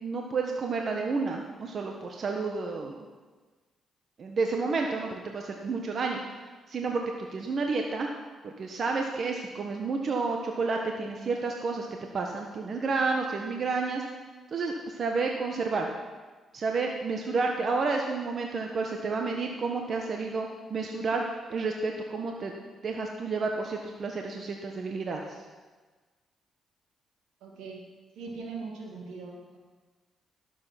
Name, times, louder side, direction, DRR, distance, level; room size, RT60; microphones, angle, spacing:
voice 1, 0.0-3.0 4.2-6.2 6.7-8.1 8.4-11.9 12.1-14.0 14.5-15.9 16.5-21.2 21.5-22.5 22.8-25.2, right 4 dB, 55° right, 2 dB, 1.1 m, -30 dB
voice 2, 27.4-27.8 28.2-29.6, right 4 dB, 85° right, 0 dB, 2.1 m, -40 dB
11.5 x 7.6 x 5.9 m, 1.3 s
cardioid pair, 70°, 0 cm